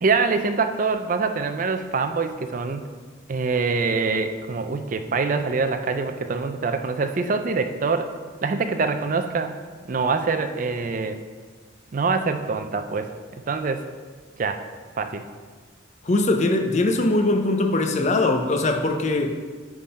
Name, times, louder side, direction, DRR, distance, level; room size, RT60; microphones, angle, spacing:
voice 1, 0.0-2.9 3.3-8.1 8.4-9.6 9.9-11.2 11.9-13.1 13.5-13.9 14.4-14.6 15.0-15.2, right 4 dB, 40° right, 8 dB, 0.4 m, -24 dB
voice 2, 16.0-19.3, left 2 dB, 35° left, 4 dB, 0.6 m, -21 dB
8.5 x 3.7 x 5.2 m, 1.5 s
head